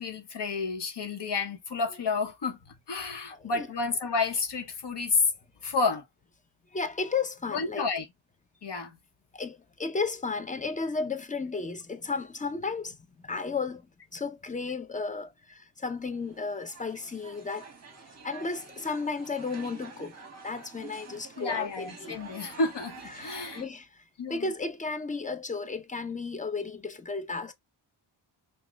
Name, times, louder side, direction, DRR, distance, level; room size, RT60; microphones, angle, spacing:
voice 1, 0.0-5.3 5.6-6.0 7.5-8.1 8.6-9.0 21.4-23.6 24.2-24.5, left 4 dB, 60° left, 1.2 m, -30 dB
voice 2, 3.3-3.7 6.7-7.9 9.3-13.0 13.2-13.8 14.1-17.7 18.2-20.1 20.4-22.2 23.1-23.9 24.3-27.5, left 4 dB, 15° left, 0.5 m, -33 dB
sound 1, 16.0-23.6, right 4 dB, 35° right, 1.2 m, -48 dB
6.0 x 2.5 x 3.2 m
wide cardioid pair, 155°, 48 cm